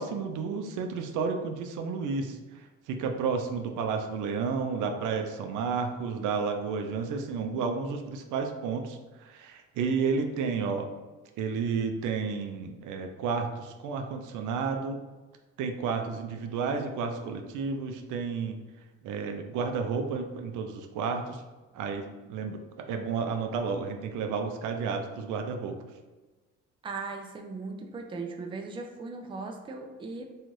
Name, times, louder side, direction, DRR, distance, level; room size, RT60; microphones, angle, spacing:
voice 1, 0.0-10.9 11.4-15.0 15.6-18.6 19.0-21.4 21.7-25.8, right 5 dB, 80° right, 5 dB, 0.4 m, -31 dB
voice 2, 26.8-30.2, right 3 dB, 15° right, 3 dB, 0.3 m, -38 dB
2.6 x 2.3 x 3.1 m, 1.2 s
cardioid pair, 90°, 30 cm